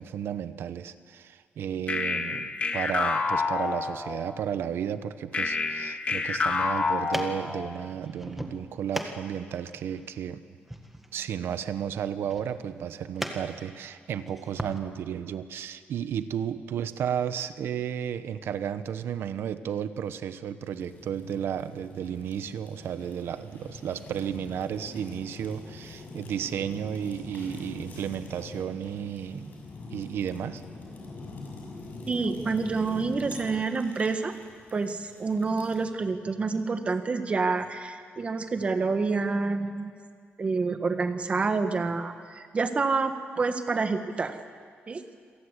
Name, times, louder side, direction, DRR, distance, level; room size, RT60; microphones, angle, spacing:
voice 1, 0.0-10.4 11.1-29.6 29.9-30.6, right 9 dB, 75° right, 12 dB, 1.0 m, -33 dB
sound 1, 1.9-4.4 5.3-7.9, left 4 dB, 30° left, 1.7 m, -28 dB
sound 2, 6.2-14.8, right 1 dB, 5° right, 1.7 m, -40 dB
Fire, 20.7-35.9, left 3 dB, 50° left, 6.5 m, -44 dB
voice 2, 32.1-34.3 34.7-39.9 40.4-44.3 44.9-45.0, right 4 dB, 30° right, 8 dB, 1.5 m, -28 dB
27.0 x 18.0 x 8.3 m, 2.1 s
cardioid pair, 145°, 4 cm